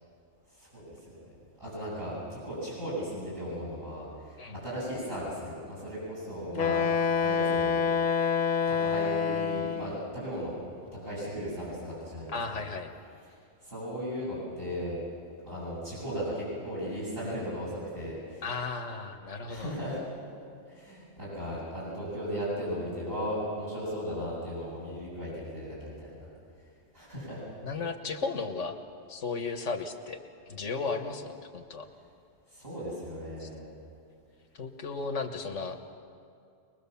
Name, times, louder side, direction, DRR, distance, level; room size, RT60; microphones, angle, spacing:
voice 1, 0.5-1.2 1.6-7.8 8.7-10.5 11.0-12.6 13.6-15.0 15.4-18.5 19.5-20.0 20.7-26.3 26.9-27.5 32.5-33.7, equal, 50° right, -8 dB, 7.8 m, -36 dB
Wind instrument woodwind instrument, 6.6-10.0, left 6 dB, 40° left, 0.9 m, -27 dB
voice 2, 12.3-12.9 18.4-19.7 27.6-28.8 29.1-31.9 33.4-33.5 34.5-35.9, left 4 dB, 80° left, 6 dB, 1.7 m, -35 dB
23.0 x 21.0 x 7.1 m, 2.5 s
omnidirectional pair, 1.2 m